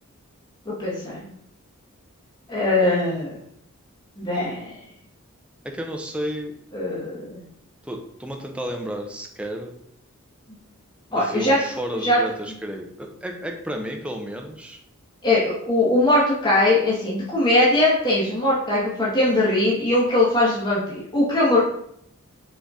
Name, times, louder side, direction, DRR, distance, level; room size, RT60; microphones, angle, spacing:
voice 1, 0.7-1.2 2.5-3.4 4.2-4.7 6.7-7.4 11.1-11.6 12.0-12.2 15.2-21.6, left 1 dB, 20° left, -6 dB, 0.9 m, -21 dB
voice 2, 5.6-6.5 7.8-9.7 11.1-14.8, equal, 5° right, 2 dB, 0.5 m, -32 dB
4.0 x 3.6 x 3.5 m, 0.71 s
head